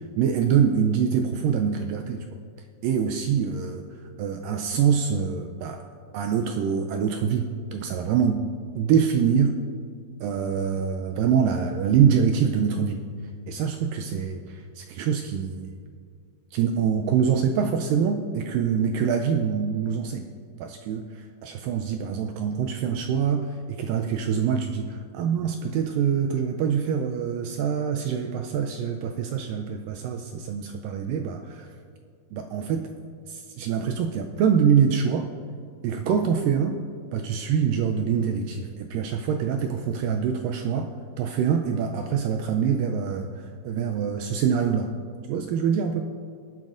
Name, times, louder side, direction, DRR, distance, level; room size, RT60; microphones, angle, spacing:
voice 1, 0.2-2.3 2.8-3.9 4.2-5.8 6.1-8.4 8.8-9.6 10.2-13.0 13.5-15.7 16.5-20.3 20.6-31.7 32.3-32.9 33.3-35.3 35.8-36.8 37.1-40.9 41.2-44.9 45.3-46.0, right 7 dB, 85° right, 5 dB, 1.9 m, -25 dB
18.5 x 12.0 x 2.5 m, 2.2 s
omnidirectional pair, 4.5 m